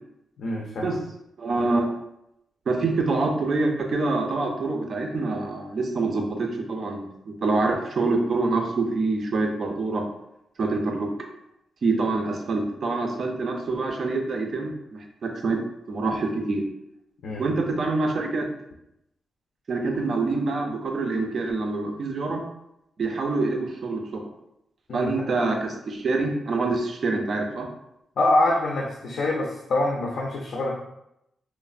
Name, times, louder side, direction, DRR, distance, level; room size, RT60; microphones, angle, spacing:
voice 1, 0.4-0.9 17.2-17.5 24.9-25.1 28.2-30.7, left 2 dB, 70° left, -2 dB, 0.4 m, -25 dB
voice 2, 1.4-1.9 2.7-10.0 10.6-11.1 11.8-15.6 15.9-16.6 17.4-18.5 19.7-22.4 23.0-24.2 24.9-27.7, right 3 dB, 50° right, 3 dB, 0.4 m, -26 dB
3.0 x 2.0 x 2.4 m, 0.82 s
wide cardioid pair, 140°, 0 cm